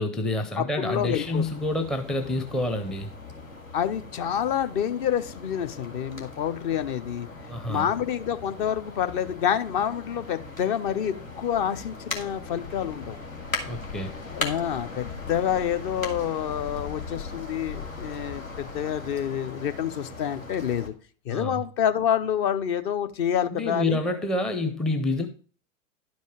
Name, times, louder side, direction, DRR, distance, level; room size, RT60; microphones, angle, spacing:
voice 1, 0.0-3.1 7.5-7.9 13.6-14.1 21.3-21.6 23.5-25.3, left 2 dB, ahead, 0.6 m, -28 dB
voice 2, 0.6-1.4 3.7-7.3 7.7-13.2 14.3-20.9 21.3-24.0, left 9 dB, 40° left, 0.9 m, -28 dB
sound 1, 0.9-20.9, left 3 dB, 85° left, 2.1 m, -39 dB
11.5 x 5.3 x 5.0 m
figure-of-eight pair, 95°, 40 cm